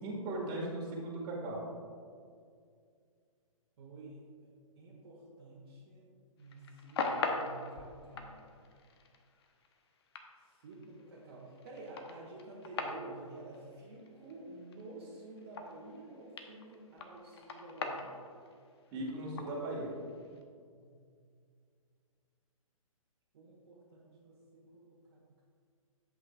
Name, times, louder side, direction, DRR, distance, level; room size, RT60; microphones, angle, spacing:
voice 1, 0.0-1.7 18.9-20.0, right 1 dB, 25° right, -3 dB, 2.0 m, -38 dB
voice 2, 3.8-4.5 4.8-6.1 6.4-8.5 10.4-18.2 20.7-21.0 23.3-25.4, right 2 dB, 45° right, -4 dB, 1.5 m, -50 dB
sound 1, 6.4-16.1 16.4-20.4, left 4 dB, 45° left, 0.9 m, -41 dB
12.0 x 7.9 x 2.4 m, 2.2 s
figure-of-eight pair, 125°, 18 cm